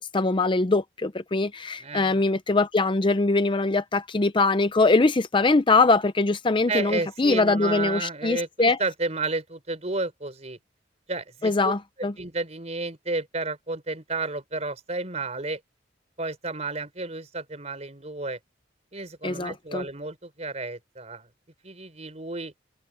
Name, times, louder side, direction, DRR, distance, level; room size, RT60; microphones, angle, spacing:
voice 1, 0.1-8.8 11.4-12.1 19.2-19.8, left 3 dB, 25° left, 0.6 m, -22 dB
voice 2, 1.8-2.2 6.7-10.6 11.1-11.7 12.2-15.6 16.2-18.4 18.9-21.3 21.6-22.5, right 3 dB, 35° right, 4.4 m, -32 dB
head